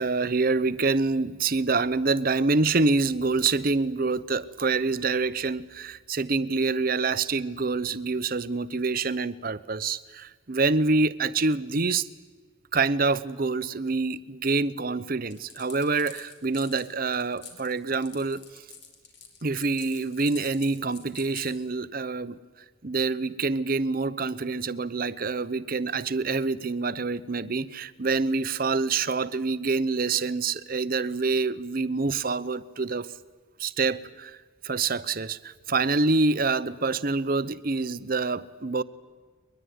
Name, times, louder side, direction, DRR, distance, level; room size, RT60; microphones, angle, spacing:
voice 1, 0.0-12.1 12.7-18.4 19.4-22.4 22.8-33.1 33.6-34.4 34.6-38.8, right 3 dB, 45° right, 15 dB, 0.8 m, -26 dB
sound 1, 15.3-21.5, left 7 dB, 55° left, 4.6 m, -46 dB
22.5 x 21.5 x 9.5 m, 1.5 s
head